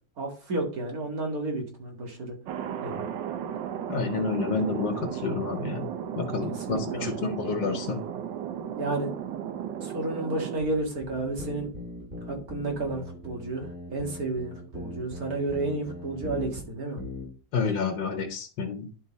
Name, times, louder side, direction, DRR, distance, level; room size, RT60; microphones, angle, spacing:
voice 1, 0.2-2.4 2.8-3.1 6.5-7.1 8.7-9.1 9.8-11.7 12.3-17.0, right 2 dB, 55° right, 1 dB, 2.3 m, -31 dB
Thunder, 2.5-10.6, right 9 dB, 85° right, 1.5 m, -35 dB
voice 2, 3.9-5.9 6.2-8.0 17.5-18.9, left 4 dB, 80° left, 4 dB, 1.6 m, -29 dB
sound 1, 10.6-16.6 17.0-17.3, left 1 dB, 30° right, 2.5 m, -40 dB
10.5 x 3.7 x 4.1 m, 0.38 s
omnidirectional pair, 1.9 m